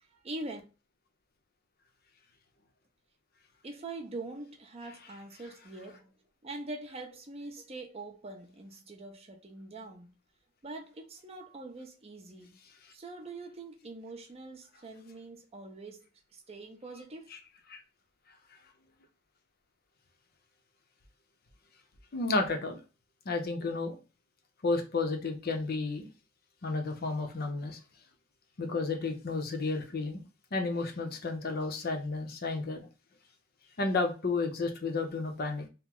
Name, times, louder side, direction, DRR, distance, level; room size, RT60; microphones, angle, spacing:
voice 1, 0.0-0.6 3.6-10.2 10.6-12.5 12.9-17.3, right 2 dB, 30° right, 0.6 m, -44 dB
voice 2, 22.1-22.8 23.3-24.0 24.6-26.1 26.6-27.8 28.6-30.2 30.5-32.9 33.8-35.7, left 3 dB, 50° left, 0.6 m, -32 dB
2.9 x 2.0 x 3.5 m
head